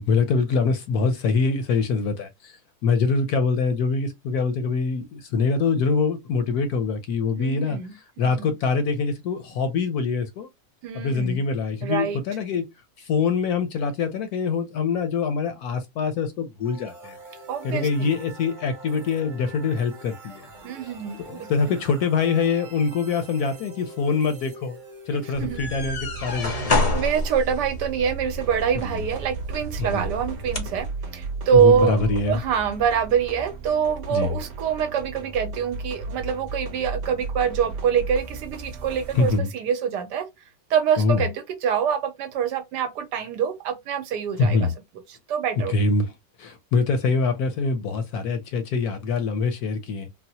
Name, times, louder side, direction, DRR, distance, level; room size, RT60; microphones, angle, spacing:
voice 1, 0.0-10.5 10.9-12.7 13.0-17.2 17.6-20.5 20.8-20.9 21.2-24.8 25.1-26.8 29.8-30.0 31.5-32.4 34.1-34.4 39.1-39.5 41.0-41.2 44.4-44.7 45.7-46.1 46.4-50.1, left 4 dB, 70° left, 0.9 m, -24 dB
voice 2, 7.4-8.5 10.8-11.4 11.8-12.2 17.5-18.1 20.6-21.8 25.4-25.6 26.9-30.9 31.1-32.0 32.3-40.3 40.7-44.7 45.3-45.7, right 7 dB, 75° right, 1.2 m, -25 dB
sound 1, 16.6-28.4, right 1 dB, 35° right, 0.8 m, -45 dB
sound 2, 25.3-30.8, left 1 dB, 55° left, 0.4 m, -29 dB
sound 3, 28.3-39.4, right 3 dB, 55° right, 0.9 m, -35 dB
3.9 x 2.0 x 2.7 m
omnidirectional pair, 1.9 m